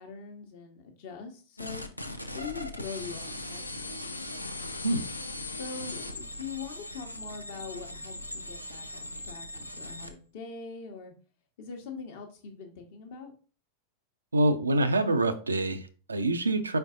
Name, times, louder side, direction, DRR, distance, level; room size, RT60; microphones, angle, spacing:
voice 1, 0.0-1.8 2.3-4.0 5.5-11.1 11.6-13.3, left 5 dB, 50° left, 4 dB, 0.9 m, -42 dB
sound 1, 1.6-10.1, left 2 dB, 85° left, 0.5 m, -39 dB
voice 2, 14.3-16.8, right 2 dB, 75° right, 9 dB, 0.5 m, -26 dB
4.7 x 4.4 x 2.4 m, 0.38 s
figure-of-eight pair, 90°, 0 cm